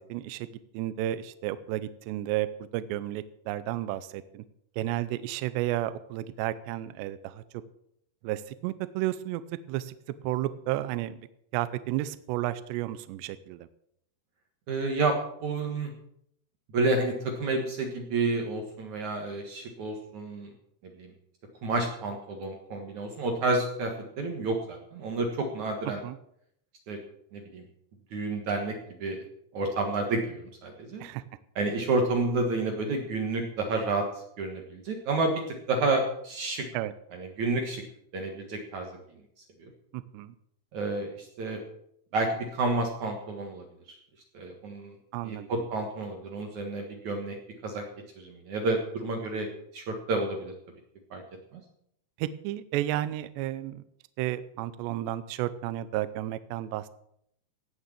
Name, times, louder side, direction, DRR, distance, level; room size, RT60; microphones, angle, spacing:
voice 1, 0.1-0.5 0.7-2.5 2.7-4.4 4.8-7.4 8.2-9.4 9.7-9.9 10.2-11.2 11.5-13.7 26.0-26.2 31.0-31.2 36.7-36.9 39.9-40.3 45.1-45.5 52.2-53.8 54.2-56.8, right 14 dB, 80° right, 14 dB, 2.7 m, -32 dB
voice 2, 14.7-15.9 16.7-20.5 21.0-21.1 21.6-26.0 26.9-27.0 27.3-27.6 28.1-29.2 29.5-31.0 31.6-34.1 34.4-35.4 35.7-36.7 37.1-37.8 38.1-38.9 39.6-39.7 40.7-41.6 42.1-44.0 44.3-45.0 45.2-47.4 47.6-47.8 48.2-49.5 49.7-50.5 51.1-51.2 51.5-51.6, right 3 dB, 60° right, 3 dB, 2.2 m, -30 dB
17.5 x 6.6 x 7.4 m, 0.73 s
omnidirectional pair, 5.3 m